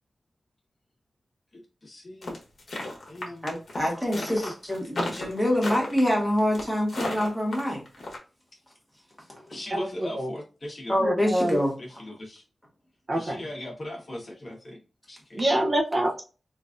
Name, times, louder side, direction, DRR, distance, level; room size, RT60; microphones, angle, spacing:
voice 1, 1.8-2.4 3.1-3.5 3.8-4.5 5.2-5.4 9.5-11.0 11.8-12.4 13.1-14.8 15.1-15.6, left 1 dB, 40° left, -1 dB, 1.2 m, -39 dB
sound 1, 2.2-8.2, left 2 dB, 60° left, 1.1 m, -34 dB
voice 2, 3.4-7.8 10.9-11.7, left 1 dB, 5° right, -1 dB, 1.2 m, -25 dB
voice 3, 11.0-11.6 13.1-13.5 15.3-16.2, right 1 dB, 40° right, 0 dB, 0.6 m, -25 dB
3.8 x 2.5 x 2.4 m, 0.34 s
wide cardioid pair, 115°, 0 cm